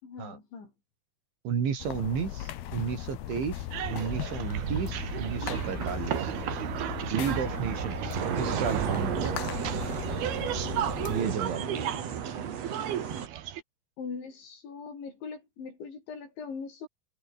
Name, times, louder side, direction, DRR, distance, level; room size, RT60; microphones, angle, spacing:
voice 1, 0.0-0.7 11.4-12.1 14.0-16.9, left 5 dB, 80° left, 9.5 m, -41 dB
voice 2, 1.5-6.3 7.1-9.4 11.0-11.9, right 7 dB, 90° right, 6.9 m, -33 dB
sound 1, 1.8-11.3, left 12 dB, 65° left, 3.3 m, -38 dB
sound 2, 3.7-13.6, right 11 dB, 65° right, 3.5 m, -34 dB
sound 3, 8.1-13.3, right 7 dB, 45° right, 2.7 m, -34 dB
omnidirectional pair, 5.2 m